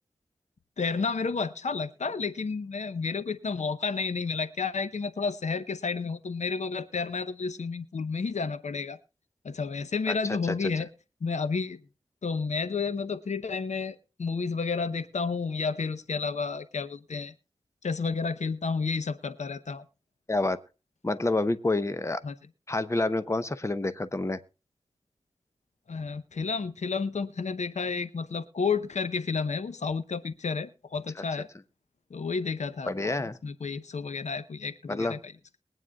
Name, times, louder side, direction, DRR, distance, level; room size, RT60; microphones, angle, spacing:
voice 1, 0.8-9.0 9.4-10.9 11.2-11.8 12.2-17.3 17.8-19.8 22.2-22.3 25.9-31.5 32.1-35.3, left 4 dB, 80° left, 13 dB, 0.8 m, -31 dB
voice 2, 21.0-22.2 22.7-24.4 32.9-33.4 34.9-35.2, left 2 dB, 25° left, 12 dB, 0.9 m, -28 dB
22.0 x 9.1 x 2.4 m, 0.32 s
wide cardioid pair, 80°, 12 cm